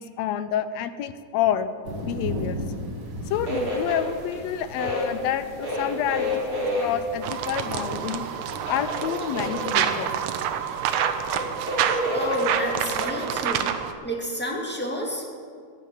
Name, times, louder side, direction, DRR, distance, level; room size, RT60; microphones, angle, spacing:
voice 1, 0.0-1.7 2.0-2.6 3.3-8.2 8.7-10.2, left 10 dB, 75° left, 12 dB, 1.7 m, -28 dB
sound 1, 1.8-10.5, equal, 50° right, 2.1 m, -38 dB
sound 2, 3.2-13.4, equal, 25° right, 4.1 m, -31 dB
sound 3, 7.2-13.9, right 9 dB, 80° right, 2.1 m, -28 dB
voice 2, 12.1-13.7 14.0-15.3, equal, 5° left, -2 dB, 1.3 m, -30 dB
15.5 x 6.2 x 9.9 m, 2.1 s
omnidirectional pair, 3.3 m